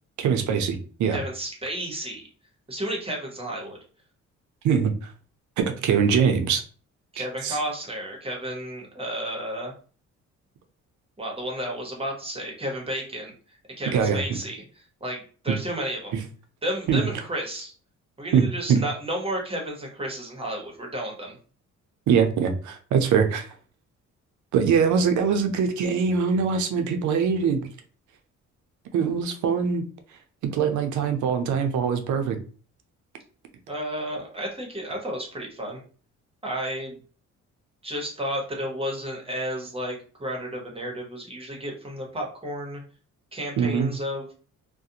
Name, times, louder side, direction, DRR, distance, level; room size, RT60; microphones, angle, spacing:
voice 1, 0.2-1.2 4.6-5.1 5.6-6.6 7.2-7.6 13.9-14.2 15.5-15.6 16.1-16.2 16.9-17.1 18.3-18.4 18.7-18.8 22.1-23.5 24.5-27.7 28.9-29.8 30.4-32.4 43.6-43.9, right 6 dB, 75° right, 6 dB, 0.6 m, -23 dB
voice 2, 1.1-2.2 2.7-3.8 7.1-9.7 11.2-14.6 15.0-16.1 16.6-17.7 18.2-21.3 33.7-35.8 36.4-37.0 37.8-42.8 43.3-44.3, equal, 20° right, 0 dB, 1.0 m, -32 dB
2.4 x 2.2 x 2.7 m, 0.39 s
cardioid pair, 90°, 30 cm